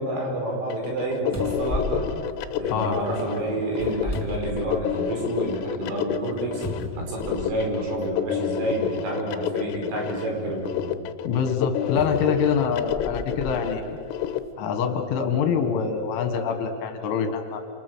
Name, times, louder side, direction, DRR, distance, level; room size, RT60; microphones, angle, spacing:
voice 1, 0.0-2.0 2.6-6.6 7.0-10.9, right 2 dB, 65° right, 0 dB, 7.1 m, -29 dB
sound 1, 0.7-14.4, left 11 dB, 90° left, 3.5 m, -30 dB
sound 2, 0.9-1.0 1.3-3.0 3.7-5.1 5.6-5.7 6.6-7.7 8.7-8.8 11.9-13.6 14.3-14.4, left 1 dB, 10° left, 1.0 m, -34 dB
voice 2, 11.3-13.9 14.6-17.6, left 6 dB, 75° left, 6 dB, 4.1 m, -25 dB
28.5 x 27.5 x 6.4 m, 2.4 s
omnidirectional pair, 5.8 m